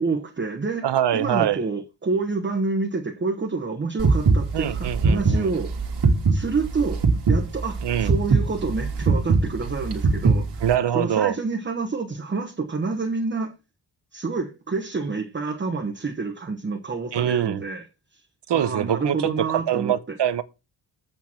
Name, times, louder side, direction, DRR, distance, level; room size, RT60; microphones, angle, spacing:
voice 1, 0.0-5.8 6.3-13.6 14.1-17.8 18.1-18.2 18.5-19.9, right 4 dB, 25° right, 1.3 m, -28 dB
voice 2, 0.8-1.6 4.5-5.5 7.8-8.1 10.6-11.3 17.1-17.6 18.5-19.3 19.7-20.4, right 10 dB, 85° right, 1.0 m, -23 dB
sound 1, 4.0-10.7, right 4 dB, 70° right, 2.4 m, -20 dB
8.6 x 8.1 x 4.5 m
wide cardioid pair, 160°, 41 cm